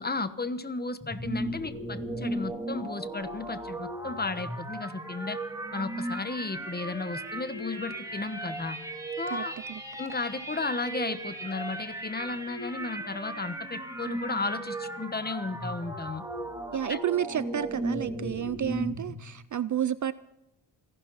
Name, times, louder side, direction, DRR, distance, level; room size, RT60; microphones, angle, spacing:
voice 1, 0.0-5.4 5.7-8.8 9.2-9.5 10.0-16.2 16.9-17.0, left 3 dB, 20° left, 12 dB, 1.2 m, -34 dB
sound 1, 1.0-19.2, right 1 dB, 5° right, 2.4 m, -36 dB
voice 2, 16.7-20.1, right 10 dB, 40° right, 16 dB, 0.5 m, -30 dB
29.0 x 11.5 x 4.1 m, 0.91 s
cardioid pair, 120°, 45 cm